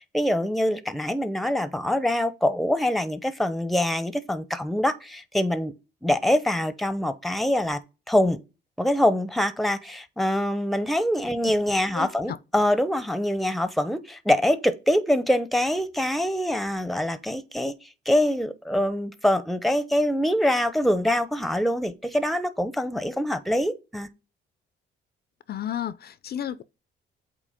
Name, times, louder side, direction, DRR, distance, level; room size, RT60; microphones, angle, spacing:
voice 1, 0.0-5.7 6.0-7.8 8.1-8.4 8.8-17.7 18.1-24.1, left 1 dB, ahead, 0.8 m, -24 dB
voice 2, 11.9-12.4 25.5-26.6, left 10 dB, 55° left, 0.5 m, -32 dB
8.4 x 2.9 x 5.0 m
cardioid pair, 90°, 20 cm